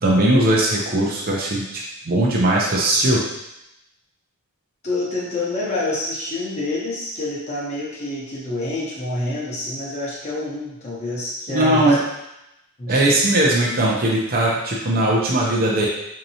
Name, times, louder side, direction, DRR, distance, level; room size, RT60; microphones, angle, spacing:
voice 1, 0.0-3.2 11.5-12.0 12.9-15.9, right 1 dB, 45° right, -3 dB, 0.6 m, -19 dB
voice 2, 4.8-12.0 12.8-13.2, left 2 dB, 30° left, -6 dB, 0.7 m, -27 dB
4.4 x 2.7 x 2.7 m, 0.87 s
head